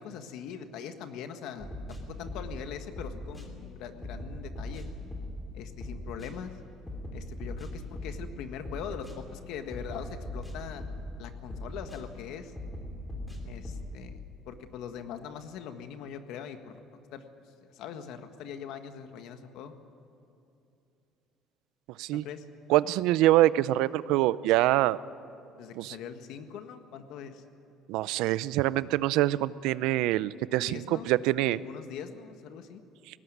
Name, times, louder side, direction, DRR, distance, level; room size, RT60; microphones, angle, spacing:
voice 1, 0.0-4.8 5.5-6.5 7.1-10.8 11.2-12.5 13.4-14.2 14.5-16.8 17.1-17.2 17.7-19.7 22.1-22.4 25.6-27.4 30.6-31.1 31.4-32.8, left 8 dB, 65° left, 8 dB, 1.6 m, -42 dB
sound 1, 1.6-2.6 3.0-3.5 4.0-5.5 5.8-6.3 6.9-8.3 8.7-9.2 9.7-11.2 11.5-12.0 12.6-13.9, left 1 dB, 5° left, 2.8 m, -39 dB
voice 2, 22.7-25.0 25.8-26.0 27.9-31.6, right 15 dB, 75° right, 18 dB, 0.5 m, -25 dB
21.0 x 18.0 x 9.4 m, 2.8 s
cardioid pair, 170°, 0 cm